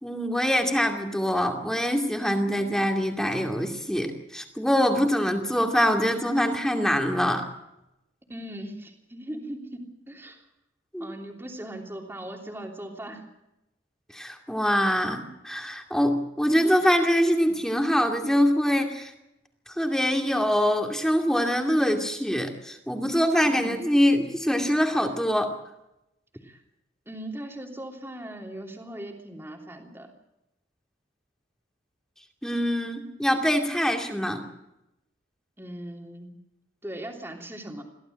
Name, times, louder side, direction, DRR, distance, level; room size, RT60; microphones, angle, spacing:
voice 1, 0.0-7.5 10.9-11.1 14.1-19.1 19.7-25.5 32.4-34.4, equal, 5° left, 3 dB, 2.5 m, -24 dB
voice 2, 8.3-10.4 11.0-13.2 23.4-23.9 26.4-26.6 27.1-30.1 35.6-36.3 36.8-37.8, right 1 dB, 15° right, 1 dB, 3.1 m, -39 dB
23.5 x 16.0 x 7.7 m, 0.89 s
head